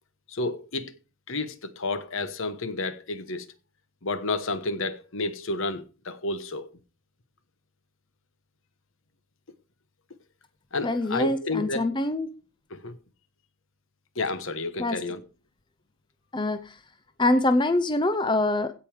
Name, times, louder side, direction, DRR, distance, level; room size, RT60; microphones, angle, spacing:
voice 1, 0.3-0.9 1.3-3.5 4.0-6.7 10.7-11.9 12.7-13.0 14.1-15.2, left 2 dB, 60° left, 1.1 m, -31 dB
voice 2, 10.8-12.3 14.8-15.0 16.3-16.8 17.2-18.7, left 2 dB, 20° left, 0.6 m, -24 dB
16.5 x 5.4 x 4.9 m
head